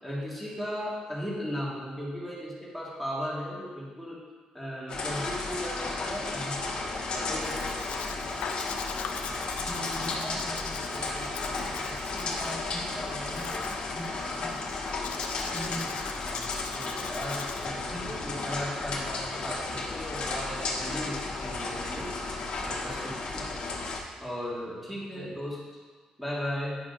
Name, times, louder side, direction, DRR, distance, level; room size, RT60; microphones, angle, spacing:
voice 1, 0.0-4.2 4.5-8.4 16.7-22.1 22.6-23.7 24.2-25.8 26.2-26.8, equal, ahead, -6 dB, 1.7 m, -37 dB
sound 1, 4.9-24.0, left 3 dB, 50° left, 1.1 m, -33 dB
Domestic sounds home sounds, 7.4-17.7, left 7 dB, 80° left, 0.4 m, -42 dB
voice 2, 9.5-14.6 15.5-16.4 17.9-18.3 19.0-19.3 25.1-25.3, equal, 20° right, -6 dB, 1.4 m, -42 dB
9.8 x 5.8 x 2.6 m, 1.5 s
cardioid pair, 120°, 2 cm